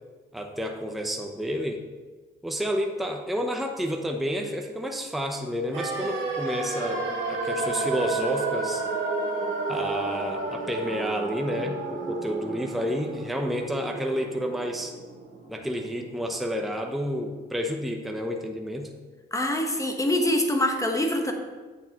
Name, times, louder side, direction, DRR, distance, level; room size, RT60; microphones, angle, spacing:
voice 1, 0.3-1.8 2.4-8.8 9.7-14.9 15.5-18.9, equal, ahead, 3 dB, 0.7 m, -30 dB
sound 1, 5.7-15.7 15.9-16.0, right 3 dB, 75° right, 2.2 m, -31 dB
voice 2, 19.3-21.3, left 1 dB, 15° left, 3 dB, 1.1 m, -24 dB
8.0 x 6.9 x 2.9 m, 1.3 s
cardioid pair, 90°, 20 cm